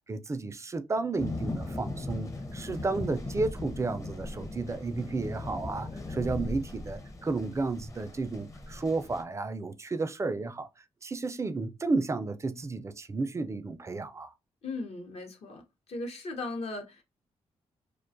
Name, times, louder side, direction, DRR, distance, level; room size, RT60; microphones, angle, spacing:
voice 1, 0.1-10.7 11.0-14.3, right 3 dB, 25° right, 0.3 m, -32 dB
sound 1, 1.2-9.2, left 2 dB, 25° left, 0.6 m, -38 dB
voice 2, 14.6-15.6 15.9-17.0, left 2 dB, 60° left, 0.7 m, -37 dB
2.4 x 2.2 x 2.5 m
cardioid pair, 70°, 12 cm